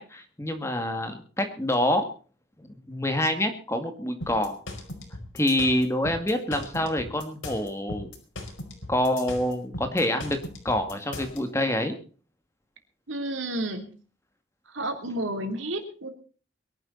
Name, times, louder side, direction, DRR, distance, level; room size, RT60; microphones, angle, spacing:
voice 1, 0.0-2.0 2.6-4.6 5.3-8.1 8.9-10.4 10.6-11.9, left 1 dB, 15° left, 6 dB, 2.2 m, -26 dB
sound 1, 4.2-11.4, left 1 dB, 90° left, 5.0 m, -38 dB
voice 2, 13.1-13.9 14.7-16.1, right 1 dB, 80° right, 6 dB, 3.4 m, -31 dB
22.5 x 11.5 x 4.1 m, 0.39 s
head